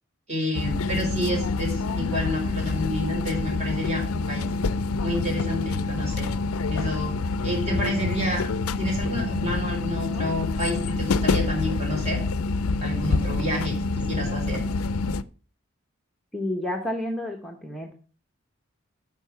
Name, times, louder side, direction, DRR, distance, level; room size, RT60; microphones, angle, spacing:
voice 1, 0.3-4.5 5.0-6.3 6.7-7.1 7.4-8.5 8.8-12.2 12.8-14.6, equal, 30° right, 0 dB, 4.2 m, -29 dB
sound 1, 0.5-15.2, left 3 dB, 85° left, 0.5 m, -27 dB
voice 2, 16.3-17.9, left 1 dB, ahead, 0 dB, 1.0 m, -30 dB
9.2 x 6.0 x 5.6 m, 0.39 s
head